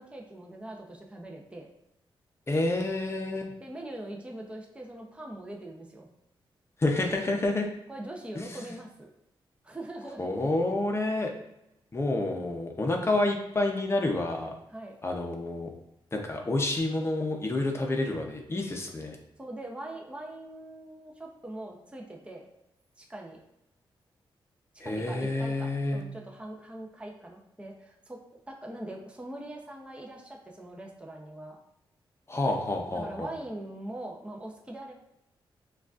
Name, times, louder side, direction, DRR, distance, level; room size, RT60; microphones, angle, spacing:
voice 1, 0.0-1.7 3.6-6.1 7.9-9.1 9.6-10.4 14.7-15.0 19.4-22.5 23.0-23.4 24.8-28.2 28.5-31.6 32.9-34.9, right 1 dB, 10° right, 0 dB, 0.6 m, -42 dB
voice 2, 2.5-3.5 6.8-7.7 8.4-8.7 10.2-11.3 11.9-14.5 15.0-15.7 16.1-19.2 24.8-26.0 32.3-33.3, left 2 dB, 30° left, 2 dB, 0.6 m, -29 dB
6.1 x 2.4 x 2.4 m, 0.86 s
cardioid pair, 90°, 9 cm